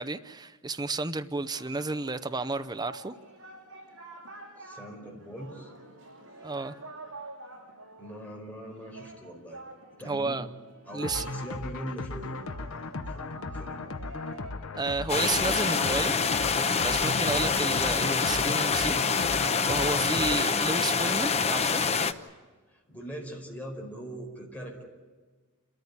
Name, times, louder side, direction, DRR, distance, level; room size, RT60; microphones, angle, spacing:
voice 1, 0.0-3.1 6.4-6.7 10.1-10.5 10.9-11.2 14.7-16.1 16.8-19.0 19.6-21.8, right 3 dB, 20° right, 11 dB, 0.7 m, -31 dB
Singing, 1.4-14.5, right 2 dB, 60° right, 7.6 m, -47 dB
voice 2, 4.6-5.7 8.0-9.6 10.0-10.4 10.8-12.4 13.1-13.8 17.2-17.4 22.7-24.8, right 1 dB, 5° left, -1 dB, 4.9 m, -41 dB
sound 1, 11.0-20.4, left 3 dB, 65° left, 0.9 m, -37 dB
sound 2, 15.1-22.1, left 5 dB, 30° left, 0.8 m, -26 dB
29.5 x 14.0 x 9.9 m, 1.4 s
head